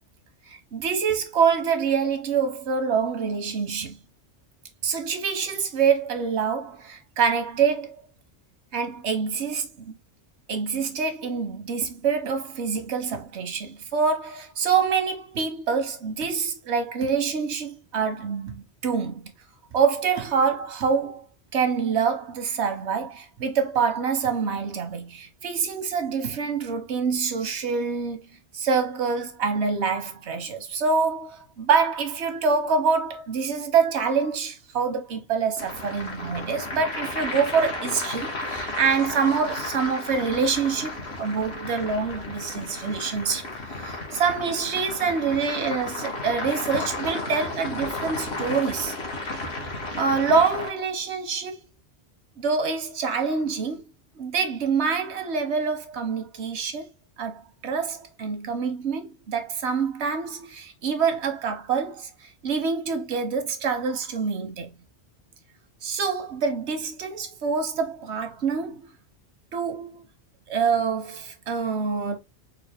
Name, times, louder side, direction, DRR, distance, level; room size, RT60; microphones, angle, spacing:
voice 1, 0.5-4.0 4.8-8.0 8.7-9.9 10.5-19.3 19.7-21.2 21.5-28.2 28.5-48.9 50.0-51.6 52.4-53.8 54.2-56.9 57.2-64.7 65.8-68.9 69.5-70.0 70.5-72.2, right 5 dB, 90° right, 1.1 m, -26 dB
sound 1, 35.6-50.7, left 2 dB, 70° left, 1.4 m, -33 dB
4.0 x 2.5 x 3.3 m
omnidirectional pair, 1.1 m